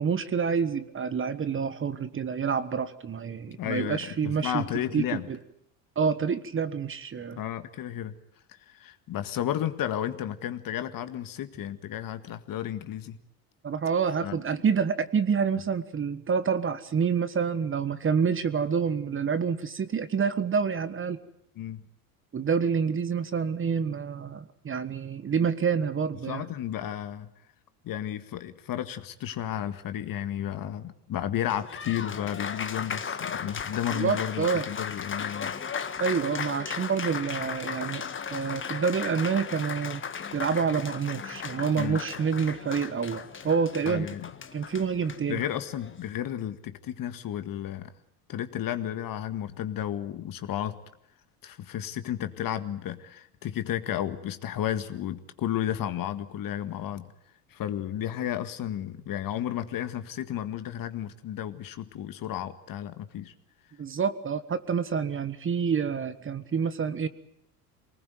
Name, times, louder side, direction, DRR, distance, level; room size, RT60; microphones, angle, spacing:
voice 1, 0.0-4.6 4.9-5.4 5.9-7.4 13.6-21.2 22.3-26.4 33.9-34.7 36.0-38.0 38.3-40.0 40.3-44.1 44.5-45.4 63.8-67.1, right 6 dB, 25° right, 13 dB, 1.4 m, -28 dB
voice 2, 3.5-5.3 7.4-8.1 8.5-13.2 14.2-14.4 21.6-21.8 26.3-27.3 27.8-35.6 41.8-42.0 43.9-44.3 45.3-47.9 48.3-50.8 51.4-57.1 57.5-63.3, left 11 dB, 45° left, 11 dB, 1.8 m, -33 dB
Applause, 31.3-46.1, left 6 dB, 25° left, 1.6 m, -36 dB
24.0 x 19.5 x 9.3 m, 0.73 s
hypercardioid pair, 80°, 47 cm